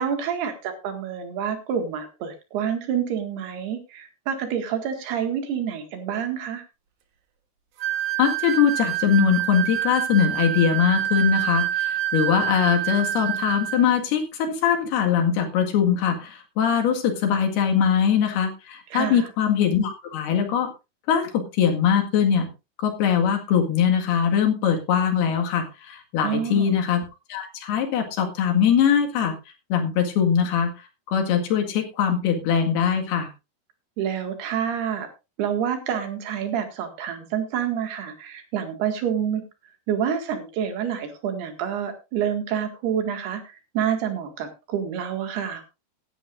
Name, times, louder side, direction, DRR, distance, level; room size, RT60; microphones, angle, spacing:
voice 1, 0.0-6.7 18.9-19.3 26.2-26.8 34.0-35.1 35.4-39.4 39.9-45.6, right 8 dB, 80° right, 6 dB, 3.9 m, -28 dB
sound 1, 7.8-13.9, right 12 dB, 60° right, 2.3 m, -27 dB
voice 2, 8.2-20.7 21.1-22.5 22.8-27.0 27.3-29.4 29.7-30.7 31.1-33.3, left 8 dB, 75° left, 4 dB, 3.9 m, -22 dB
17.0 x 11.0 x 2.6 m, 0.27 s
omnidirectional pair, 4.7 m